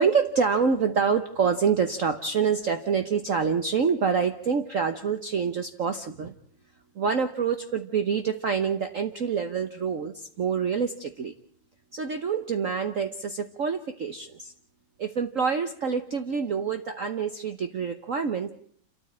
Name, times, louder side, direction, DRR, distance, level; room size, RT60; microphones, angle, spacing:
voice 1, 0.0-6.3 6.9-11.3 11.9-14.5 15.0-18.5, right 6 dB, 50° right, 8 dB, 1.3 m, -26 dB
28.5 x 14.0 x 8.6 m, 0.62 s
omnidirectional pair, 2.1 m